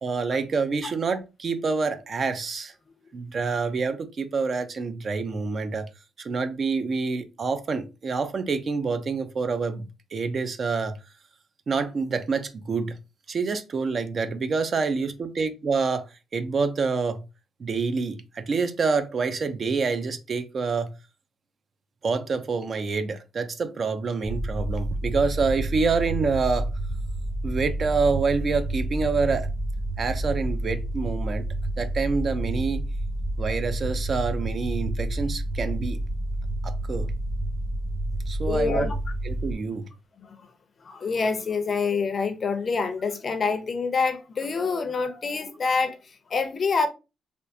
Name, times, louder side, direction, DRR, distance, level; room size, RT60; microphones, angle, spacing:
voice 1, 0.0-2.7 3.1-5.9 6.2-11.0 11.7-13.0 13.3-16.0 16.3-17.2 17.6-20.9 22.0-26.7 27.4-29.5 30.0-31.4 31.8-32.8 33.4-36.0 36.6-37.1 38.3-38.9 39.3-39.9, right 4 dB, 45° right, 0.5 m, -27 dB
sound 1, 24.2-39.5, right 1 dB, 15° right, 0.8 m, -29 dB
voice 2, 38.4-39.0 40.2-40.5 40.8-46.9, left 4 dB, 45° left, 0.5 m, -26 dB
3.5 x 2.4 x 2.7 m
cardioid pair, 90°, 0 cm